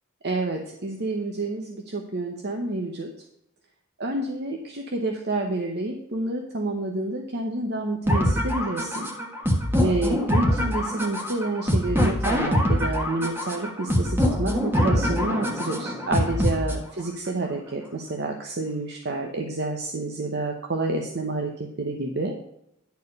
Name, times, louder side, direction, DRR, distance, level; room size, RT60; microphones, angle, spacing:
voice 1, 0.2-3.1 4.0-9.1 9.8-21.5 21.8-22.3, right 2 dB, 55° right, 2 dB, 0.9 m, -29 dB
sound 1, 8.1-17.1, equal, 10° right, 1.3 m, -24 dB
10.5 x 4.6 x 5.3 m, 0.78 s
head